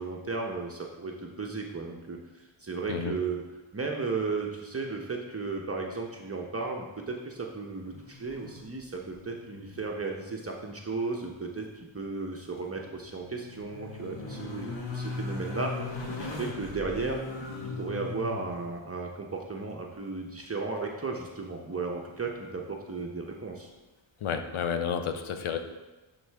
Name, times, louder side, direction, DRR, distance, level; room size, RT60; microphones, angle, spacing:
voice 1, 0.0-3.4 3.7-15.7 16.1-17.2 17.6-23.7, right 3 dB, 30° right, 0 dB, 0.8 m, -35 dB
sound 1, 7.8-8.8 9.1-9.9 10.2-10.3 12.8-18.6 21.5-21.6, left 3 dB, 60° left, 1.4 m, -39 dB
voice 2, 24.2-25.6, left 7 dB, 75° left, 7 dB, 0.8 m, -31 dB
11.0 x 4.0 x 3.5 m, 1.2 s
cardioid pair, 65°, 49 cm